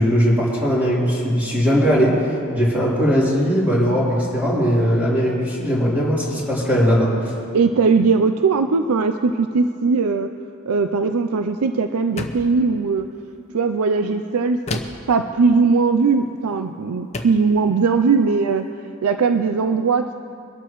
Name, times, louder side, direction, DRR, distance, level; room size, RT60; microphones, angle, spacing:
voice 1, 0.0-2.3 2.5-7.3, equal, 10° right, -8 dB, 3.5 m, -19 dB
voice 2, 7.5-10.3 10.7-13.1 13.5-18.7 19.0-20.1, right 4 dB, 80° right, 8 dB, 0.5 m, -19 dB
sound 1, 12.2-12.6 14.7-15.1 16.4-16.6 17.1-17.5, left 2 dB, 30° left, 0.8 m, -29 dB
23.0 x 12.5 x 3.1 m, 2.5 s
head